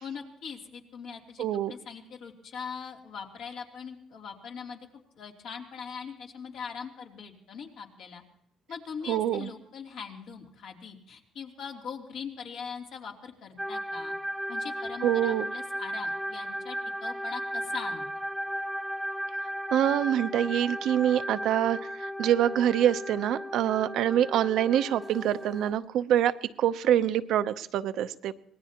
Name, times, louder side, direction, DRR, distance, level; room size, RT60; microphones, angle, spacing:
voice 1, 0.0-4.8 5.1-8.2 8.7-14.1 14.5-18.0, left 6 dB, 70° left, 1 dB, 3.1 m, -41 dB
voice 2, 1.4-1.7 9.1-9.5 15.0-15.5 19.7-28.3, right 11 dB, 75° right, 11 dB, 0.7 m, -25 dB
sound 1, 13.6-25.7, equal, ahead, 0.9 m, -35 dB
25.0 x 19.5 x 2.9 m, 0.74 s
cardioid pair, 120°, 0 cm